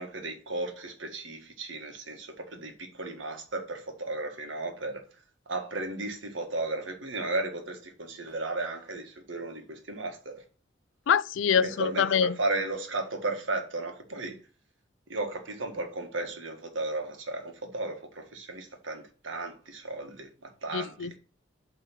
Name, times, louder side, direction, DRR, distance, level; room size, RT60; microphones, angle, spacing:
voice 1, 0.0-5.0 5.5-10.4 11.5-14.4 15.1-21.1, right 2 dB, 85° right, 1.5 m, -35 dB
voice 2, 11.1-12.3 20.7-21.2, left 7 dB, 90° left, 0.4 m, -25 dB
8.1 x 3.5 x 5.8 m
head